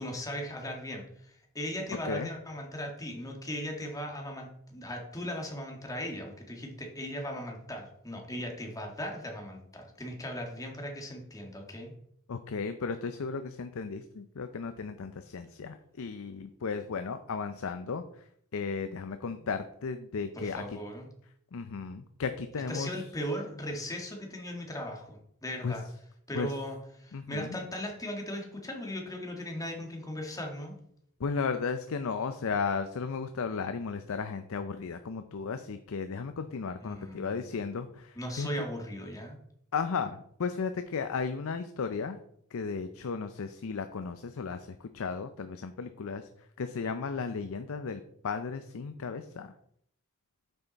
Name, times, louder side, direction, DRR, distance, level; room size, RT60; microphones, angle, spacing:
voice 1, 0.0-11.9 19.4-19.5 20.3-21.1 22.7-25.8 26.3-30.7 36.8-37.5 38.2-39.4, equal, 15° left, 1 dB, 1.8 m, -38 dB
voice 2, 1.9-2.3 12.3-18.0 18.5-20.6 21.5-22.9 25.6-25.7 26.3-26.5 27.1-27.6 31.2-38.5 39.7-42.2 42.5-46.2 46.6-49.5, left 5 dB, 65° left, 9 dB, 0.5 m, -35 dB
9.1 x 5.7 x 4.1 m, 0.69 s
head